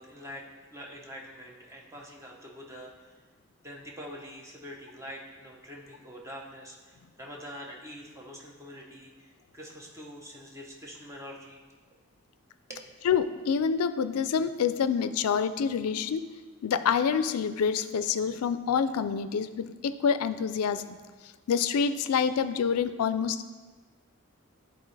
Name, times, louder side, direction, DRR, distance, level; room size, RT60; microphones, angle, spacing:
voice 1, 0.0-3.1 3.6-11.6 12.7-13.0, equal, 15° right, -1 dB, 0.8 m, -45 dB
voice 2, 13.0-16.2 16.6-21.0 21.5-23.5, left 6 dB, 90° left, 12 dB, 0.4 m, -27 dB
11.0 x 3.9 x 3.2 m, 1.4 s
head